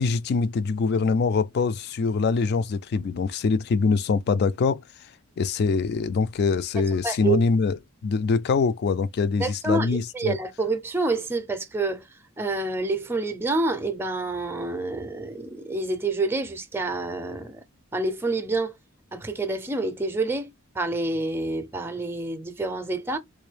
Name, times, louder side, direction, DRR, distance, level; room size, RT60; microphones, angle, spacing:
voice 1, 0.0-4.8 5.4-10.4, left 4 dB, 50° left, 0.3 m, -24 dB
voice 2, 6.8-7.4 9.4-12.0 12.4-17.6 17.9-18.7 19.1-23.2, right 3 dB, 10° right, 0.5 m, -28 dB
3.6 x 2.5 x 3.2 m
head